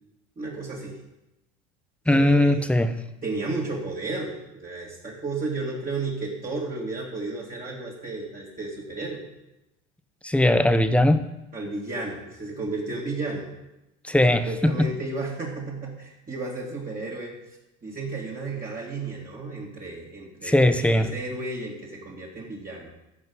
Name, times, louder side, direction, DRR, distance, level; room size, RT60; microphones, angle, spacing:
voice 1, 0.4-1.0 2.1-2.6 3.2-9.2 11.5-13.5 14.3-17.3 17.8-22.9, right 3 dB, 20° right, -5 dB, 2.8 m, -33 dB
voice 2, 2.1-2.9 10.2-11.2 14.1-14.9 20.4-21.1, left 1 dB, 5° left, 9 dB, 0.9 m, -19 dB
15.0 x 5.7 x 5.5 m, 0.92 s
hypercardioid pair, 85°, 37 cm